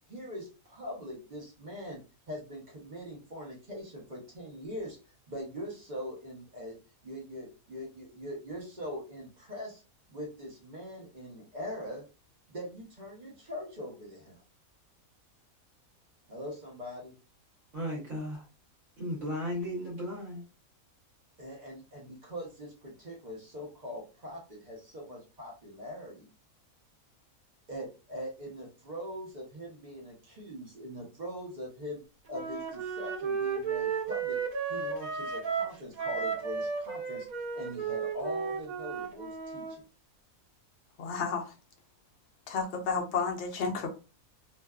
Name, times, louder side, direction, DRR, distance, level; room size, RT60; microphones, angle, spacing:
voice 1, 0.1-2.0 2.3-5.0 5.3-6.8 7.0-9.8 10.1-12.0 12.5-14.4 16.3-17.1 21.4-26.3 27.7-32.0 32.3-34.4 34.7-37.3 37.5-39.8, equal, 40° right, 0.8 m, -42 dB
voice 2, 17.7-18.4 19.0-20.4, equal, 60° right, 1.1 m, -35 dB
Wind instrument woodwind instrument, 32.3-39.7, right 6 dB, 85° right, 1.1 m, -34 dB
voice 3, 41.0-41.5 42.5-43.9, left 5 dB, 60° left, 0.8 m, -31 dB
2.7 x 2.2 x 2.3 m
omnidirectional pair, 1.5 m